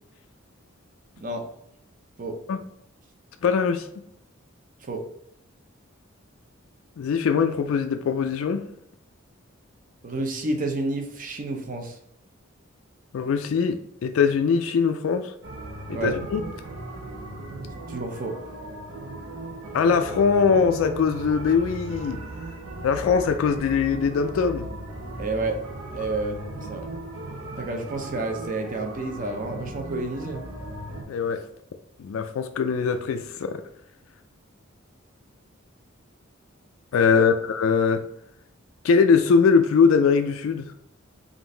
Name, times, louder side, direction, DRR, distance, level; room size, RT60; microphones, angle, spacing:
voice 1, 3.4-3.9 7.0-8.6 13.1-15.3 15.9-16.4 19.7-22.2 22.8-24.7 31.1-31.4 32.0-33.6 36.9-38.0 38.8-40.7, left 5 dB, 70° left, 7 dB, 0.3 m, -21 dB
voice 2, 10.0-12.0 15.9-16.1 17.9-18.4 25.2-25.6 25.9-26.8 27.6-30.4 37.1-37.3, right 2 dB, 40° right, 3 dB, 0.6 m, -30 dB
sound 1, 15.4-31.0, right 2 dB, 80° right, 0.8 m, -37 dB
3.7 x 2.5 x 3.8 m, 0.73 s
head